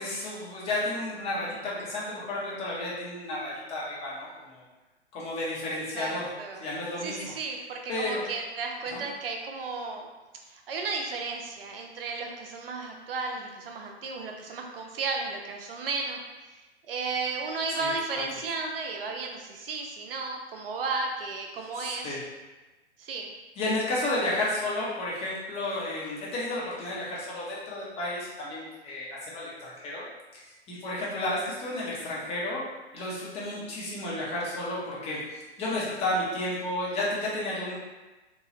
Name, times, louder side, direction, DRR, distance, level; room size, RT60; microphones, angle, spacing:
voice 1, 0.0-4.6 5.1-6.3 6.6-7.2 7.9-8.2 8.9-9.0 17.8-17.9 21.7-22.2 23.6-30.0 30.3-32.6 32.9-37.7, left 1 dB, 20° left, -6 dB, 0.7 m, -32 dB
voice 2, 5.9-6.6 7.0-10.1 10.5-16.2 16.9-22.1 23.0-23.3, right 4 dB, 55° right, 2 dB, 0.6 m, -34 dB
3.0 x 2.3 x 2.8 m, 1.1 s
figure-of-eight pair, 110°, 34 cm